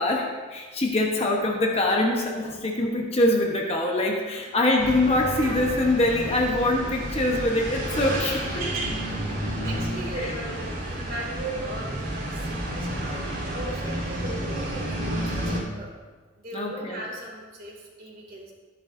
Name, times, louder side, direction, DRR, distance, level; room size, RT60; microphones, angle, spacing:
voice 1, 0.0-8.6 9.4-9.5 10.1-10.4 16.5-17.0, left 1 dB, 30° left, 0 dB, 1.0 m, -24 dB
sound 1, 4.8-15.6, right 1 dB, 65° right, 3.6 m, -31 dB
voice 2, 9.6-15.9 16.4-18.5, right 2 dB, 45° right, -3 dB, 2.6 m, -38 dB
13.5 x 10.5 x 2.7 m, 1.4 s
head